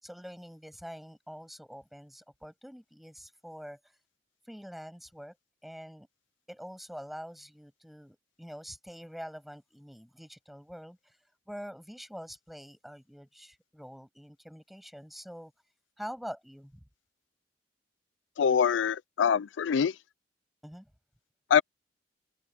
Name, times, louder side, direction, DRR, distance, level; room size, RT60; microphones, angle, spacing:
voice 1, 0.0-3.8 4.5-5.4 5.6-6.1 6.5-11.2 11.5-15.5 16.0-16.8 20.6-20.9, equal, ahead, 7.8 m, -45 dB
voice 2, 18.4-19.9 21.5-21.6, left 7 dB, 85° left, 0.4 m, -24 dB
open air
head